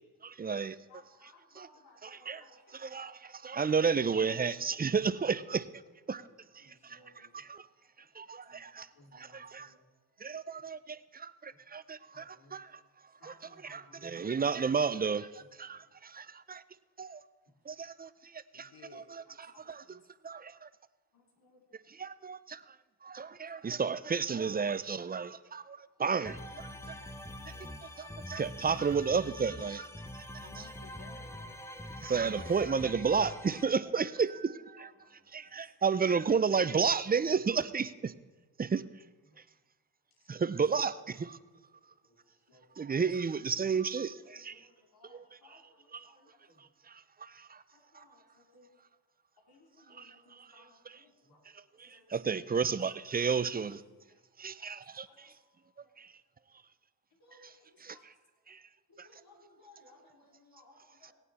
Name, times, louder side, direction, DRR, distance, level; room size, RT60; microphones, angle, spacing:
voice 1, 0.2-0.8 1.6-1.7 2.0-2.4 2.7-5.7 6.1-6.2 6.5-7.7 8.2-8.9 9.1-9.7 10.2-12.7 13.2-16.2 16.5-16.6 17.0-17.2 17.7-20.0 20.2-20.7 22.0-22.6 23.0-27.0 28.0-29.9 30.5-30.6 32.0-34.9 35.3-38.1 38.6-38.8 40.3-41.4 42.8-44.6 45.1-45.2 45.5-45.6 45.9-46.1 46.9-47.6 47.9-48.0 50.0-51.0 51.8-53.8 54.4-55.3 56.0-56.1 57.8-58.0 58.5-58.6 59.0-59.1, right 5 dB, 25° right, 15 dB, 0.5 m, -32 dB
voice 2, 0.9-2.6 2.9-3.0 6.1-6.3 6.6-7.3 8.5-8.6 9.0-9.8 12.1-12.6 13.2-14.4 19.9-20.0 26.7-27.0 27.3-28.3 35.0-35.1 42.5-43.0 44.4-46.3 47.9-48.7 49.5-51.4 51.9-52.0 53.1-53.2 55.0-55.3 57.2-57.6 57.9-58.0 58.9-61.1, left 2 dB, 65° left, -1 dB, 3.5 m, -61 dB
voice 3, 18.5-19.1 30.4-31.6 40.2-40.3 59.9-60.0, left 6 dB, 85° left, 7 dB, 1.3 m, -56 dB
sound 1, 26.3-33.6, left 1 dB, 5° left, 0.9 m, -45 dB
17.5 x 9.0 x 4.2 m, 1.2 s
cardioid pair, 65°, 39 cm